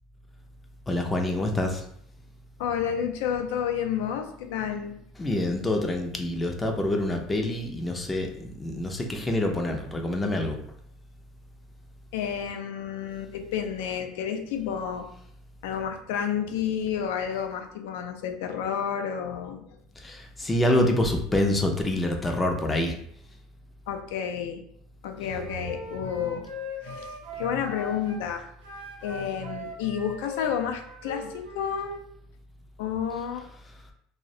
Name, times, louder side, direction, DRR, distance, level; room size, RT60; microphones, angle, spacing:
voice 1, 0.9-1.8 5.2-10.6 20.0-22.9, left 1 dB, 15° left, 3 dB, 0.4 m, -26 dB
voice 2, 2.6-4.9 12.1-15.1 15.6-19.7 23.9-24.6 25.0-26.5 26.8-28.5 29.0-31.9 32.8-33.5, left 8 dB, 85° left, 6 dB, 0.3 m, -30 dB
Wind instrument woodwind instrument, 25.2-28.2 28.6-32.0, left 2 dB, 90° right, 0.5 m, -40 dB
2.4 x 2.0 x 2.7 m, 0.68 s
supercardioid pair, 135°, 0 cm